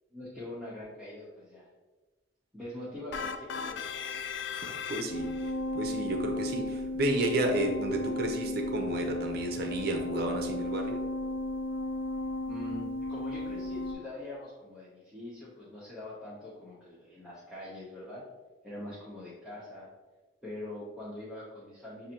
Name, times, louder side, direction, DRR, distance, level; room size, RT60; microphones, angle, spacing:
voice 1, 0.1-1.7 2.5-3.9 12.4-18.3 18.6-19.9 20.4-22.1, left 1 dB, ahead, -10 dB, 0.8 m, -43 dB
sound 1, 3.1-5.5, left 6 dB, 60° left, 0.3 m, -37 dB
voice 2, 4.5-5.3 5.7-11.0, right 1 dB, 50° right, 2 dB, 0.6 m, -32 dB
sound 2, 5.1-13.9, left 1 dB, 80° left, 1.3 m, -34 dB
6.3 x 2.6 x 2.8 m, 1.2 s
head